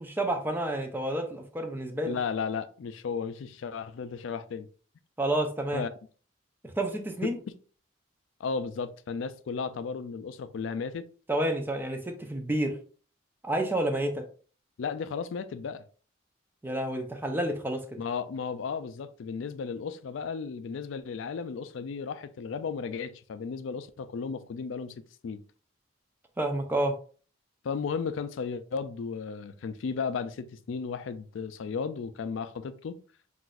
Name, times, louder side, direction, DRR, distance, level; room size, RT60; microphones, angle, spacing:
voice 1, 0.0-2.2 5.2-5.8 6.6-7.4 11.3-12.8 13.4-14.2 16.6-17.8 26.4-26.9, right 1 dB, 10° right, 0.5 m, -29 dB
voice 2, 2.0-4.7 5.7-5.9 7.2-7.5 8.4-11.0 14.8-15.8 18.0-25.0 25.2-25.4 27.6-33.0, left 5 dB, 75° left, 0.3 m, -34 dB
5.8 x 2.5 x 2.4 m
head